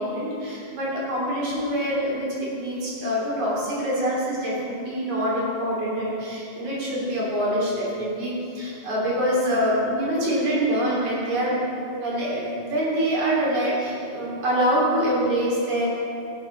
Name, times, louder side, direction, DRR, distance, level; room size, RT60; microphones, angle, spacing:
voice 1, 0.0-11.6 12.0-15.9, equal, 45° right, -6 dB, 4.1 m, -25 dB
16.5 x 6.9 x 5.8 m, 2.6 s
omnidirectional pair, 5.0 m